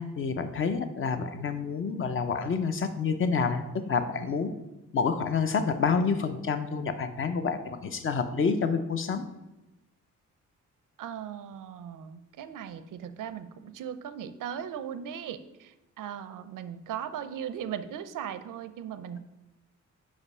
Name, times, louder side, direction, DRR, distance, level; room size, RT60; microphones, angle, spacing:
voice 1, 0.0-4.5 4.9-9.2, left 5 dB, 40° left, 9 dB, 0.6 m, -28 dB
voice 2, 11.0-19.2, right 9 dB, 90° right, 12 dB, 0.6 m, -38 dB
5.1 x 5.0 x 5.4 m, 1.0 s
wide cardioid pair, 145°, 31 cm